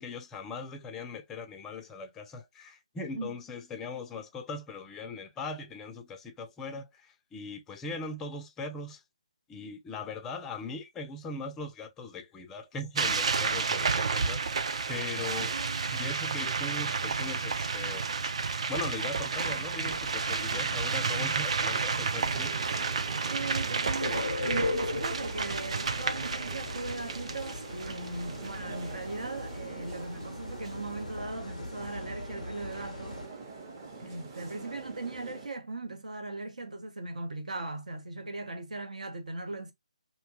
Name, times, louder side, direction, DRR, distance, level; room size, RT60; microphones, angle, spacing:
voice 1, 0.0-9.0 9.5-15.5 15.9-18.4 18.7-22.6, left 3 dB, 10° left, 0.4 m, -40 dB
sound 1, 13.0-28.9, right 4 dB, 55° right, 0.4 m, -31 dB
voice 2, 15.3-15.9 23.3-33.2 34.0-39.7, right 2 dB, 75° right, 0.9 m, -39 dB
sound 2, 22.2-35.5, right 4 dB, 30° right, 0.8 m, -45 dB
sound 3, 24.0-33.3, left 3 dB, 90° left, 0.4 m, -38 dB
2.8 x 2.1 x 2.8 m
figure-of-eight pair, 155°, 4 cm